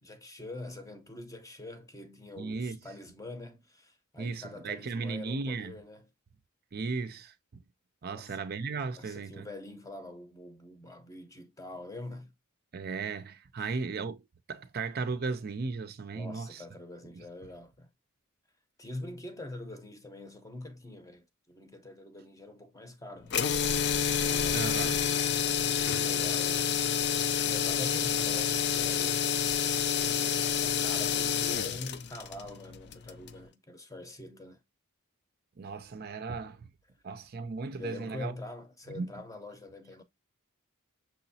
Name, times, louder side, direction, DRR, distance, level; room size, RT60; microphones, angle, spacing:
voice 1, 0.0-6.1 8.1-8.4 8.9-12.3 13.6-13.8 16.1-17.9 18.8-23.4 24.1-26.9 27.4-29.3 29.9-34.6 37.8-40.0, left 1 dB, 15° left, 0.7 m, -45 dB
voice 2, 2.4-2.8 4.2-5.8 6.7-7.3 8.0-9.5 12.7-14.2 14.5-16.6 17.1-17.5 24.5-25.0 35.6-36.7 37.0-38.3 38.9-39.1, right 4 dB, 45° right, 0.5 m, -36 dB
sound 1, 23.3-33.4, left 8 dB, 50° left, 0.4 m, -28 dB
6.2 x 2.9 x 2.7 m
head